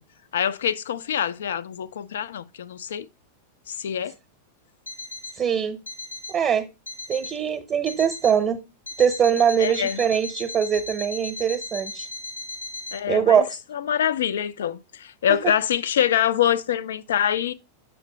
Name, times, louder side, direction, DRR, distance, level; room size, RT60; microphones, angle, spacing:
voice 1, 0.3-3.1 3.7-4.1 9.6-10.0 12.9-13.4 13.7-17.5, left 9 dB, 60° left, 0.4 m, -25 dB
Alarm, 4.9-5.4 5.9-6.4 6.9-7.4 7.9-8.4 8.9-13.0, left 2 dB, 80° left, 1.0 m, -37 dB
voice 2, 5.4-5.8 6.3-6.7 7.1-8.6 9.0-12.1 13.1-13.6 15.3-15.4, right 8 dB, 25° right, 0.8 m, -22 dB
7.2 x 4.4 x 3.8 m
figure-of-eight pair, 90°, 0 cm